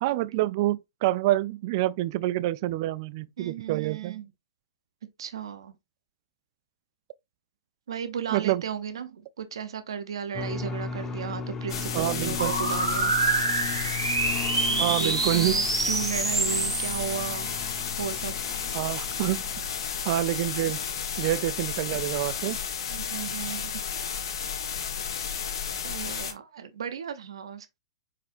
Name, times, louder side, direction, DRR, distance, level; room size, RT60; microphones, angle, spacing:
voice 1, 0.0-4.2 8.3-8.6 11.9-12.5 14.8-15.5 18.7-19.4 20.1-20.8 21.2-22.6, right 16 dB, 50° right, 0.4 m, -27 dB
voice 2, 3.4-4.2 5.2-5.8 7.9-13.1 14.6-17.5 18.0-18.4 22.9-23.7 25.8-27.8, right 7 dB, 70° right, 0.7 m, -35 dB
sound 1, 10.3-19.9, left 5 dB, 15° left, 1.0 m, -37 dB
sound 2, 11.7-26.3, left 7 dB, 65° left, 1.3 m, -32 dB
sound 3, 12.4-17.9, right 3 dB, 85° right, 1.7 m, -27 dB
4.9 x 4.2 x 2.5 m
hypercardioid pair, 110°, 3 cm